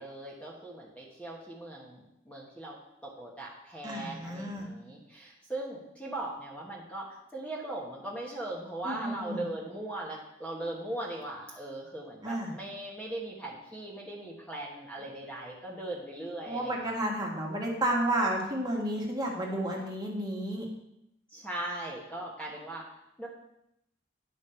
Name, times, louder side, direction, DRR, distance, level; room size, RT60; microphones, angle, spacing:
voice 1, 0.0-17.1 21.3-23.3, right 1 dB, 5° left, -4 dB, 1.2 m, -39 dB
voice 2, 3.8-4.6 8.8-9.4 12.2-12.5 16.5-20.7, right 1 dB, 20° right, -1 dB, 1.6 m, -31 dB
10.0 x 5.3 x 4.4 m, 0.82 s
head